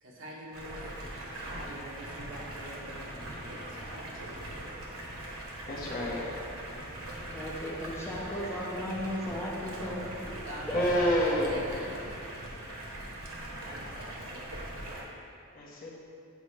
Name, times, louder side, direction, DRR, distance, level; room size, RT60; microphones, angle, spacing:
voice 1, 0.0-4.7 9.9-10.1 10.4-12.1 13.6-14.7, equal, 65° right, -4 dB, 1.3 m, -45 dB
Stream, 0.5-15.0, right 1 dB, 90° right, 1.1 m, -41 dB
voice 2, 5.6-6.2 10.7-11.6 15.5-15.9, equal, 40° left, -5 dB, 1.1 m, -28 dB
voice 3, 7.2-10.1 10.7-10.8, equal, 15° left, -5 dB, 0.8 m, -36 dB
8.1 x 4.9 x 3.3 m, 2.5 s
head